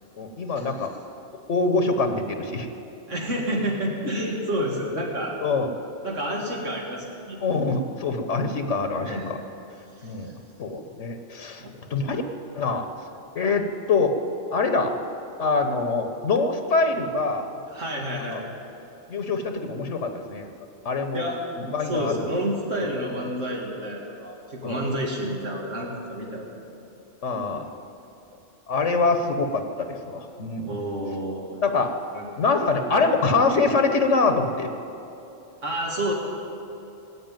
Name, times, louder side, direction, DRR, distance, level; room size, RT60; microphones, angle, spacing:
voice 1, 0.2-0.9 1.5-2.7 5.4-5.7 7.4-9.4 10.0-10.3 10.6-12.2 12.6-12.9 13.3-14.2 14.5-14.9 15.4-17.5 18.3-18.4 19.1-20.5 20.8-21.3 21.6-22.3 24.6-24.8 27.2-27.6 28.7-30.7 31.6-31.9 32.4-34.7, left 4 dB, 75° left, 7 dB, 1.3 m, -24 dB
voice 2, 3.1-5.3 6.0-7.4 9.0-9.4 10.0-10.3 11.6-12.1 17.7-18.4 21.1-21.4 21.8-26.5 30.6-31.6 32.1-32.3 32.9-33.1 35.6-36.1, equal, 85° right, -2 dB, 2.7 m, -29 dB
18.0 x 8.3 x 9.0 m, 2.8 s
omnidirectional pair, 1.2 m